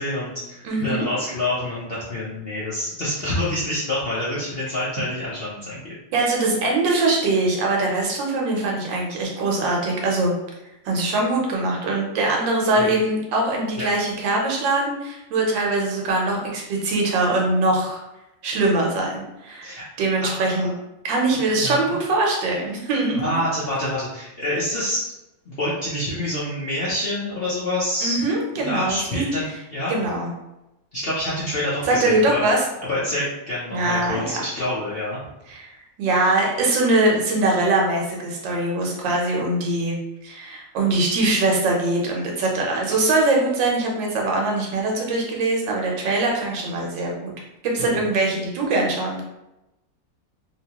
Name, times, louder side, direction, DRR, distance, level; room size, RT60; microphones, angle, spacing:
voice 1, 0.0-5.9 6.2-6.3 12.8-12.9 13.8-13.9 19.6-19.8 20.2-20.7 21.5-22.0 23.1-25.1 25.5-28.2 28.6-29.5 29.7-30.0 30.9-32.4 32.8-35.2 47.8-47.9, left 1 dB, 55° left, -9 dB, 0.6 m, -27 dB
voice 2, 0.6-1.1 6.1-10.3 10.8-18.0 18.4-20.7 21.0-23.2 28.0-29.3 29.9-30.3 31.9-32.6 33.7-34.4 35.5-40.0 40.2-47.3 47.6-49.2, right 2 dB, 85° right, -1 dB, 1.5 m, -22 dB
3.1 x 3.0 x 2.9 m, 0.93 s
omnidirectional pair, 1.9 m